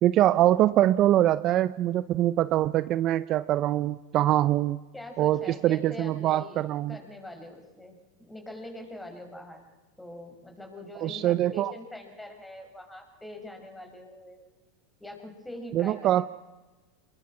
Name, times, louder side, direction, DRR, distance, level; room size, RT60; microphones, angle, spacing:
voice 1, 0.0-4.8 5.2-7.0 11.0-11.7 15.7-16.3, right 13 dB, 45° right, 15 dB, 0.7 m, -23 dB
voice 2, 4.9-9.7 10.0-14.4 15.0-16.3, left 1 dB, 5° left, 4 dB, 5.7 m, -43 dB
26.0 x 22.0 x 6.3 m, 1.2 s
hypercardioid pair, 100°, 0 cm